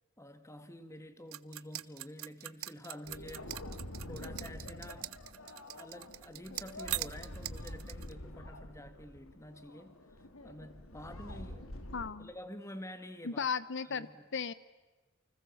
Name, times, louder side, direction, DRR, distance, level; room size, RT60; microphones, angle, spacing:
voice 1, 0.2-3.6 4.0-10.0 10.4-11.8 12.2-13.5 13.8-14.3, left 1 dB, 15° left, 10 dB, 1.8 m, -49 dB
sound 1, 1.3-8.1, right 16 dB, 85° right, 0.8 m, -42 dB
sound 2, 3.0-12.1, left 1 dB, 75° left, 2.6 m, -46 dB
voice 2, 11.9-12.3 13.2-14.5, left 6 dB, 60° left, 17 dB, 0.8 m, -36 dB
29.0 x 25.0 x 7.2 m, 1.2 s
head